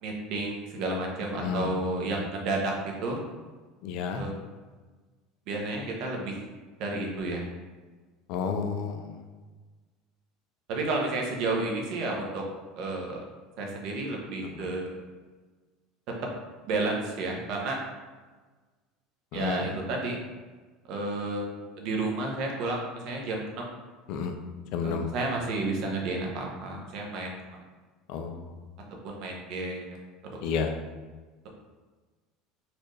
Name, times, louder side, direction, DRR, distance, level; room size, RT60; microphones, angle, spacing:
voice 1, 0.0-3.2 4.1-4.3 5.5-6.4 6.8-7.4 10.7-12.4 12.8-13.2 13.6-14.9 16.7-17.8 19.3-20.2 20.9-23.7 24.8-27.3 29.0-29.9 30.3-30.4, right 2 dB, 55° right, 0 dB, 0.8 m, -31 dB
voice 2, 1.4-1.7 2.1-2.2 3.8-4.2 8.3-9.1 14.5-14.7 19.3-19.7 24.1-24.3 24.7-25.1 28.1-28.4 30.4-30.7, left 6 dB, 60° left, 5 dB, 0.4 m, -31 dB
4.2 x 2.5 x 3.1 m, 1.3 s
cardioid pair, 155°, 0 cm